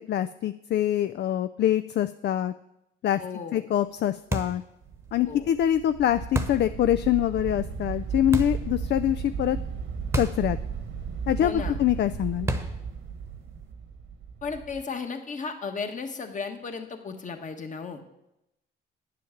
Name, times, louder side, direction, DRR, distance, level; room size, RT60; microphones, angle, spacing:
voice 1, 0.1-2.5 3.0-3.2 3.5-4.6 5.1-9.6 10.2-10.6 11.3-12.5, left 11 dB, 60° left, 12 dB, 0.4 m, -25 dB
voice 2, 3.2-3.6 5.2-5.5 11.4-11.8 14.4-18.0, left 5 dB, 40° left, 6 dB, 1.4 m, -35 dB
sound 1, 4.3-4.7 6.3-6.7 8.3-8.7 10.1-10.5 10.8-10.9 12.5-12.9, right 1 dB, 10° right, 1.1 m, -29 dB
sound 2, 4.8-14.8, right 6 dB, 75° right, 1.5 m, -35 dB
9.1 x 7.6 x 7.2 m, 0.86 s
cardioid pair, 90°, 20 cm